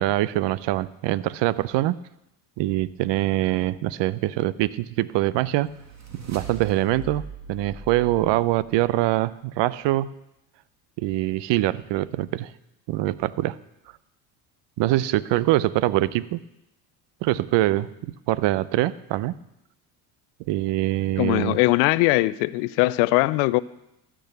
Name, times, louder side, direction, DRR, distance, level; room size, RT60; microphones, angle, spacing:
voice 1, 0.0-2.0 2.6-5.7 6.1-10.1 11.0-12.5 12.9-13.6 14.8-16.4 17.2-19.3 20.5-21.6, right 16 dB, 65° right, 19 dB, 0.7 m, -24 dB
sound 1, 4.8-9.1, right 3 dB, 35° right, 2.3 m, -41 dB
voice 2, 21.2-23.6, left 20 dB, 85° left, 19 dB, 0.6 m, -20 dB
13.5 x 6.3 x 6.8 m, 0.86 s
supercardioid pair, 85°, 47 cm